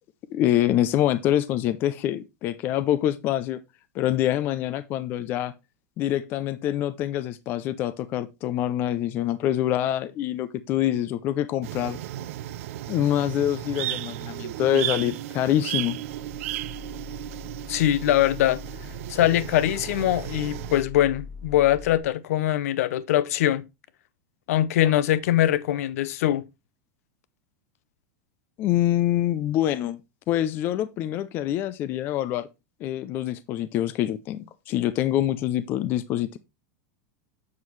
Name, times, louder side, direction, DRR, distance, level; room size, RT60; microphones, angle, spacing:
voice 1, 0.3-3.6 3.9-5.5 6.0-12.0 12.9-16.0 28.6-30.0 30.3-32.5 32.8-36.4, left 12 dB, 25° left, 0.4 m, -25 dB
sound 1, 11.6-20.8, right 14 dB, 60° right, 0.5 m, -34 dB
sound 2, 16.0-22.0, left 5 dB, 10° right, 1.7 m, -43 dB
voice 2, 17.7-18.6 19.1-23.6 24.5-26.4, left 13 dB, 70° left, 0.6 m, -22 dB
7.4 x 6.2 x 3.1 m
supercardioid pair, 175°, 8 cm